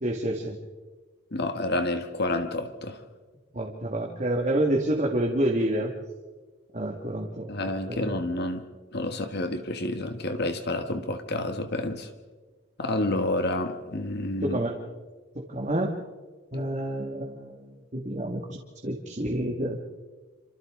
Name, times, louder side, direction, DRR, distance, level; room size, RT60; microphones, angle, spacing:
voice 1, 0.0-0.6 3.5-5.9 6.7-8.1 14.4-14.8 15.5-15.9 16.5-19.8, right 1 dB, 35° right, -1 dB, 2.0 m, -28 dB
voice 2, 1.3-3.0 7.5-8.6 8.9-12.1 12.8-14.6 16.5-16.6, left 1 dB, 55° left, 7 dB, 1.5 m, -29 dB
28.5 x 26.0 x 3.8 m, 1.3 s
head